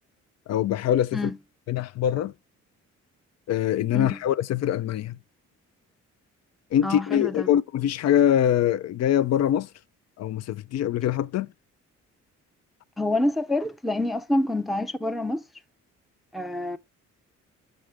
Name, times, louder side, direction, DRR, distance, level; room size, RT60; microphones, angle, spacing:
voice 1, 0.5-1.3 1.7-2.3 3.5-5.2 6.7-9.7 10.2-11.5, left 10 dB, 60° left, 0.5 m, -23 dB
voice 2, 6.8-7.5 13.0-15.4 16.3-16.8, left 1 dB, ahead, 0.5 m, -27 dB
6.3 x 6.3 x 3.3 m
cardioid pair, 90°, 30 cm